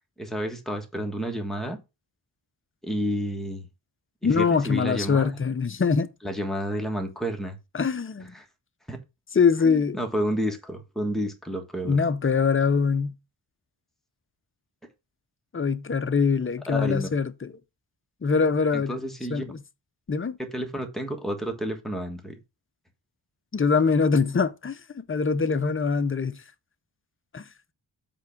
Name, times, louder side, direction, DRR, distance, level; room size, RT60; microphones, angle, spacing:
voice 1, 0.2-1.8 2.8-3.7 4.2-5.4 6.2-7.6 8.2-8.5 8.9-9.0 9.6-12.0 16.7-17.1 18.7-19.4 20.4-22.4, equal, ahead, 1.4 m, -30 dB
voice 2, 4.2-6.1 7.7-8.3 9.3-10.0 11.8-13.1 15.5-17.5 18.2-19.0 19.3-19.6 20.1-20.4 23.5-26.4 27.3-27.4, left 5 dB, 25° left, 0.6 m, -23 dB
7.8 x 3.5 x 5.8 m
wide cardioid pair, 135°, 47 cm